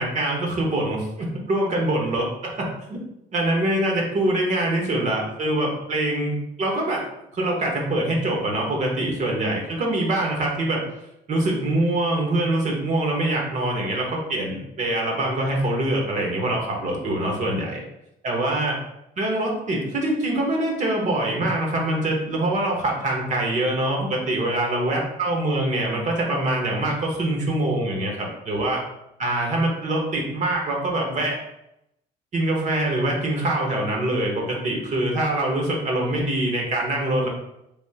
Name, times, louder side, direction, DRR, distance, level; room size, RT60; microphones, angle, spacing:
voice 1, 0.0-3.0 3.3-7.0 7.3-10.8 11.3-17.8 18.2-18.8 19.2-28.8 29.2-31.4 32.3-37.3, right 1 dB, 45° right, 0 dB, 0.9 m, -24 dB
3.5 x 2.7 x 2.7 m, 0.83 s
cardioid pair, 110°, 17 cm